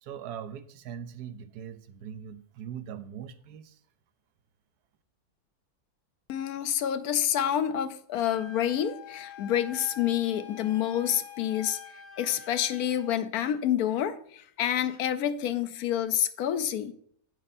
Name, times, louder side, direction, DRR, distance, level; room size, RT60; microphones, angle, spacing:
voice 1, 0.0-3.8, right 8 dB, 85° right, 12 dB, 1.2 m, -41 dB
voice 2, 6.3-11.8 12.2-16.9, left 10 dB, 75° left, 12 dB, 1.1 m, -28 dB
Wind instrument woodwind instrument, 8.2-13.2, left 7 dB, 50° left, 0.4 m, -46 dB
8.9 x 7.7 x 4.2 m, 0.64 s
omnidirectional pair, 1.6 m